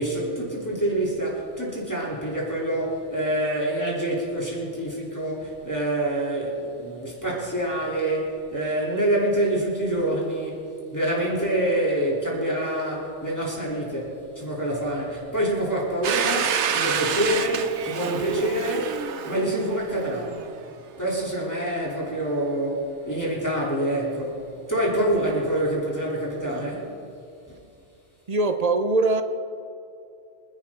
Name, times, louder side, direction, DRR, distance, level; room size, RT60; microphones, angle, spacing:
voice 1, 0.0-10.6 10.9-19.0 19.2-20.4 21.0-26.9 27.5-27.6, right 1 dB, 15° left, -5 dB, 3.3 m, -26 dB
Domestic sounds home sounds, 16.0-20.7, right 7 dB, 80° right, 1.1 m, -28 dB
voice 2, 28.3-29.2, right 2 dB, 40° right, 8 dB, 0.8 m, -22 dB
26.0 x 11.0 x 3.8 m, 2.6 s
omnidirectional pair, 1.1 m